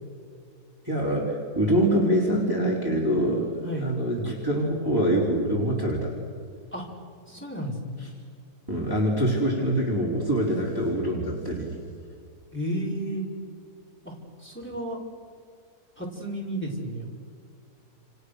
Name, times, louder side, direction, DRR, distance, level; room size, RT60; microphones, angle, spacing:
voice 1, 0.9-6.1 8.7-11.7, right 1 dB, 10° right, -3 dB, 4.1 m, -25 dB
voice 2, 7.3-8.0 12.5-13.2 14.1-14.2 14.4-15.0 16.0-17.1, right 1 dB, 5° left, -3 dB, 5.2 m, -32 dB
30.0 x 29.0 x 6.6 m, 2.3 s
omnidirectional pair, 1.8 m